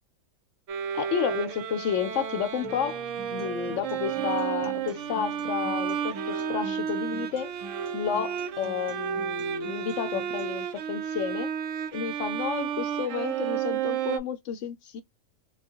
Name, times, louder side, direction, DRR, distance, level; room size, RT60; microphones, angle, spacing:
Bowed string instrument, 0.7-14.2, right 8 dB, 70° right, 0.9 m, -32 dB
voice 1, 0.9-7.5 7.9-11.5 11.9-15.0, left 8 dB, 70° left, 0.9 m, -31 dB
Acoustic guitar, 2.6-10.6, equal, 35° right, 0.7 m, -47 dB
3.5 x 2.2 x 2.7 m
omnidirectional pair, 1.4 m